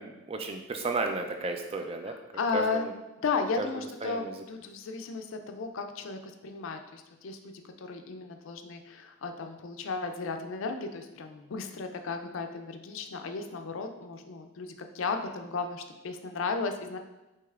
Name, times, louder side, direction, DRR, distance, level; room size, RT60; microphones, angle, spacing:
voice 1, 0.0-2.1 2.5-2.9 3.6-3.7 4.0-4.3, right 3 dB, 25° right, 5 dB, 0.3 m, -33 dB
voice 2, 2.0-2.9 3.2-7.5 7.8-17.0, left 4 dB, 60° left, 6 dB, 0.4 m, -34 dB
6.3 x 2.9 x 2.4 m, 1.0 s
head